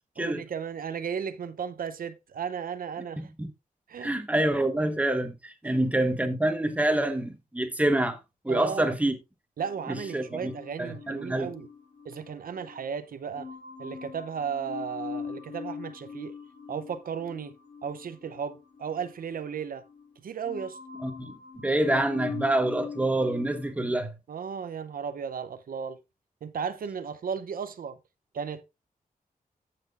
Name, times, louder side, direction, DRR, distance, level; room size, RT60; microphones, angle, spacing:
voice 1, 0.2-3.3 3.9-4.2 5.6-5.8 8.5-8.9 9.6-11.7 12.0-13.5 13.8-16.3 16.7-17.5 17.8-19.8 20.2-20.8 24.3-26.0 26.4-28.0 28.3-28.6, right 7 dB, 80° right, 0.6 m, -35 dB
voice 2, 4.0-8.2 8.4-9.1 9.9-10.5 10.8-11.5 21.0-24.1, right 1 dB, 10° right, 1.2 m, -27 dB
sound 1, 9.6-12.9 13.3-20.1 20.4-23.7, left 5 dB, 65° left, 3.5 m, -42 dB
14.5 x 6.0 x 2.4 m
wide cardioid pair, 140°, 15 cm